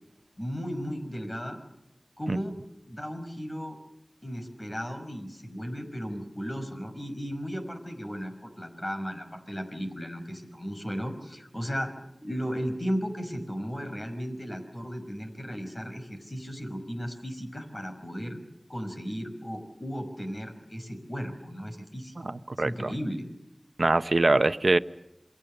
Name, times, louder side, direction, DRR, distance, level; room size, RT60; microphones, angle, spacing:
voice 1, 0.4-1.6 2.2-2.6 2.9-3.8 4.2-11.9 12.2-18.4 18.7-23.3, equal, 30° left, 6 dB, 5.6 m, -35 dB
voice 2, 22.2-22.9 23.8-24.8, right 2 dB, 70° right, 12 dB, 0.9 m, -23 dB
28.0 x 22.5 x 6.7 m, 0.87 s
wide cardioid pair, 45°, 0 cm